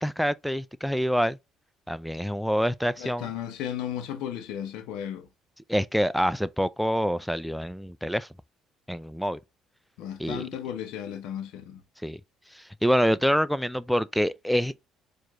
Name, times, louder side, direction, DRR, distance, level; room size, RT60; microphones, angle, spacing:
voice 1, 0.0-1.4 1.9-3.3 5.7-8.3 8.9-9.4 10.2-10.4 12.0-12.2 12.5-14.7, equal, ahead, 0.3 m, -26 dB
voice 2, 3.0-5.3 10.0-11.8, left 10 dB, 85° left, 0.8 m, -35 dB
4.6 x 2.6 x 2.9 m
cardioid pair, 95°, 0 cm